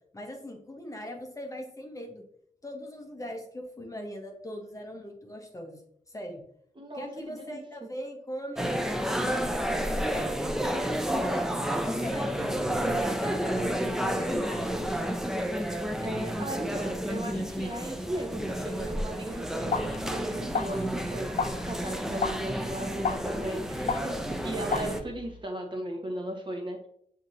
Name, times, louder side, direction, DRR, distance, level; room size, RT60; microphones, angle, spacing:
voice 1, 0.1-2.2 2.6-5.8 6.1-6.4 6.9-8.6 9.1-11.4 11.8-13.7 14.0-15.1, equal, 25° left, 2 dB, 0.8 m, -40 dB
voice 2, 6.8-7.6 16.0-26.9, right 1 dB, 35° right, 1 dB, 0.9 m, -37 dB
sound 1, 8.6-25.0, equal, 5° right, 0.4 m, -31 dB
sound 2, 19.3-25.4, left 5 dB, 65° left, 0.4 m, -34 dB
7.8 x 2.8 x 2.5 m, 0.67 s
wide cardioid pair, 110°, 13 cm